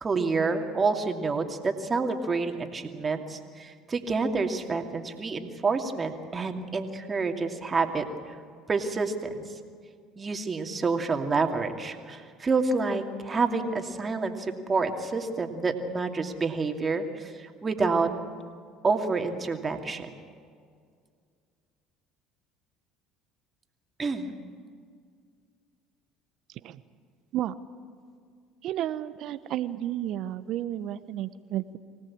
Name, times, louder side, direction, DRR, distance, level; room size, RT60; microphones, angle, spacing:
voice 1, 0.0-8.4 8.7-9.4 10.2-18.1 18.8-20.1 24.0-24.3, right 4 dB, 30° right, 4 dB, 2.6 m, -28 dB
voice 2, 28.6-31.8, right 12 dB, 60° right, 14 dB, 0.9 m, -32 dB
24.5 x 17.5 x 8.7 m, 2.1 s
hypercardioid pair, 70°, 0 cm